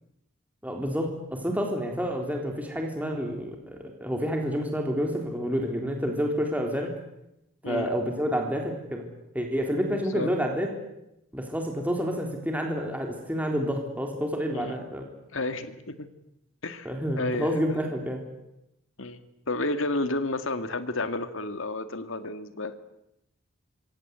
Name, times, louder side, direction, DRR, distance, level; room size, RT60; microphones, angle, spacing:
voice 1, 0.6-6.9 7.7-9.0 9.3-10.7 11.3-15.0 16.9-18.2, equal, 5° right, 2 dB, 3.7 m, -29 dB
voice 2, 9.9-10.3 14.5-14.8 15.3-16.1 16.6-16.9 17.2-17.6 19.0-19.2 19.5-22.7, left 2 dB, 65° left, 9 dB, 2.1 m, -31 dB
25.5 x 25.0 x 8.3 m, 0.85 s
head